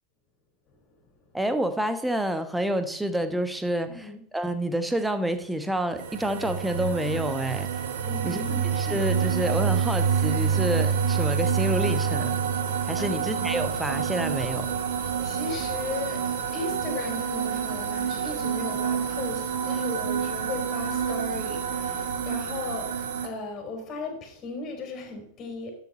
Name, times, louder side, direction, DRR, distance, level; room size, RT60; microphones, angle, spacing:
voice 1, 1.3-7.7 8.2-8.4 8.9-12.3 12.9-14.7, right 1 dB, 5° right, 9 dB, 1.2 m, -28 dB
voice 2, 3.9-4.2 8.0-9.0 13.0-13.3 15.2-16.3 16.5-25.7, left 3 dB, 30° left, 2 dB, 3.9 m, -36 dB
sound 1, 6.0-23.3, right 7 dB, 55° right, 1.5 m, -27 dB
12.5 x 7.0 x 4.2 m, 0.66 s
figure-of-eight pair, 90°, 0 cm